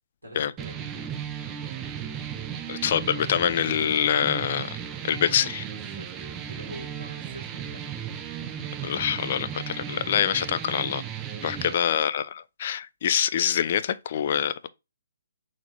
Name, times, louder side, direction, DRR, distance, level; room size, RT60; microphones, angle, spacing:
voice 1, 0.2-0.9 4.9-7.9 11.7-11.9, right 1 dB, 85° right, 1.9 m, -45 dB
sound 1, 0.6-11.7, right 8 dB, 20° right, 0.4 m, -35 dB
voice 2, 2.7-4.8 5.0-5.6 8.8-11.0 11.4-14.7, left 9 dB, 40° left, 0.3 m, -25 dB
4.0 x 2.9 x 3.0 m
figure-of-eight pair, 130°, 0 cm